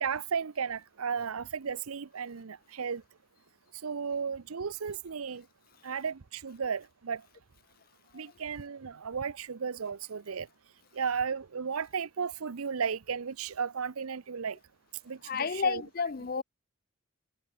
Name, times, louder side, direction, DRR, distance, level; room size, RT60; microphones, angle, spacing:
voice 1, 0.0-3.0 3.8-5.4 5.8-7.2 8.1-10.5 11.0-14.6 15.1-15.8, right 6 dB, 90° right, 0.7 m, -34 dB
voice 2, 15.2-16.4, left 5 dB, 45° left, 0.5 m, -31 dB
head